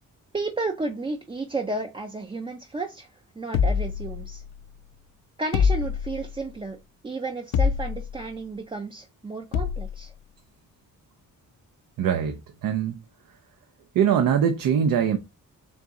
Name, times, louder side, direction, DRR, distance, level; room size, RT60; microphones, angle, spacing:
voice 1, 0.3-3.1 3.4-4.4 5.4-6.8 7.0-10.1, right 3 dB, 15° right, 0.4 m, -32 dB
sound 1, 3.5-4.6 5.5-6.4 7.5-8.2 9.5-10.0, left 6 dB, 75° left, 0.5 m, -25 dB
voice 2, 12.0-13.0 13.9-15.2, right 8 dB, 75° right, 0.6 m, -22 dB
3.7 x 2.9 x 3.6 m
cardioid pair, 90°, 34 cm